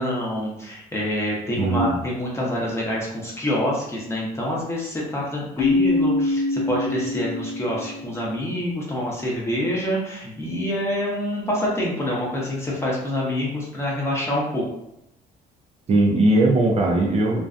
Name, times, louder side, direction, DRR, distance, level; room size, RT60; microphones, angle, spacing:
voice 1, 0.0-14.7, left 1 dB, 15° left, -4 dB, 0.8 m, -26 dB
voice 2, 1.6-1.9 15.9-17.4, right 2 dB, 40° right, -1 dB, 0.5 m, -19 dB
Keyboard (musical), 5.6-8.2, left 2 dB, 35° left, 0.4 m, -24 dB
2.5 x 2.2 x 2.5 m, 0.82 s
cardioid pair, 110°, 17 cm